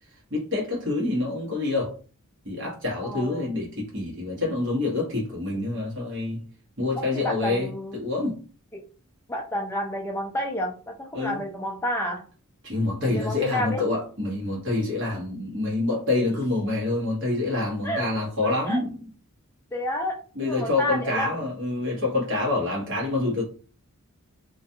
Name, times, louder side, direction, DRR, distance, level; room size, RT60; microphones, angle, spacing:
voice 1, 0.3-1.9 2.4-6.4 6.8-8.4 11.1-11.4 12.6-19.0 20.4-23.4, left 2 dB, 55° right, -3 dB, 1.0 m, -27 dB
voice 2, 3.0-3.5 7.0-8.0 8.7-8.8 9.3-12.2 13.0-13.8 17.8-18.1 18.4-18.8 19.7-21.4, left 1 dB, 10° left, 1 dB, 0.3 m, -30 dB
2.4 x 2.3 x 2.6 m, 0.38 s
head